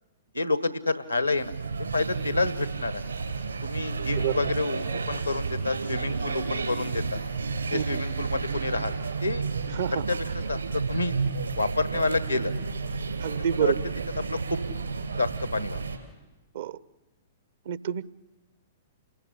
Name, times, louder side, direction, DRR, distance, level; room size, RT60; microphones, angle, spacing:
voice 1, 0.3-1.5 1.8-2.9 3.6-7.2 7.7-8.9 9.2-9.4 9.9-10.2 10.5-11.2 11.5-12.5 13.6-13.7 14.3-14.6 15.2-15.8, left 3 dB, 90° left, 13 dB, 1.2 m, -28 dB
sound 1, 1.2-16.0, right 4 dB, 75° right, 3.8 m, -31 dB
voice 2, 9.7-10.0 13.2-13.8 16.5-16.8 17.7-18.1, right 10 dB, 55° right, 18 dB, 0.7 m, -28 dB
28.5 x 17.5 x 8.3 m, 1.2 s
figure-of-eight pair, 110°, 0 cm